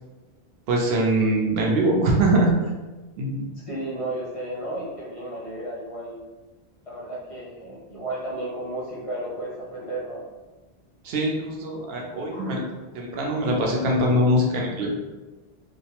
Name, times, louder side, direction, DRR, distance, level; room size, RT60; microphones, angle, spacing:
voice 1, 0.7-2.6 3.2-3.4 11.0-12.6 13.0-14.9, right 1 dB, 70° right, -1 dB, 0.8 m, -22 dB
voice 2, 3.6-6.2 6.8-10.2 12.3-12.6, right 1 dB, 45° left, -6 dB, 0.5 m, -33 dB
2.3 x 2.0 x 2.8 m, 1.2 s
omnidirectional pair, 1.1 m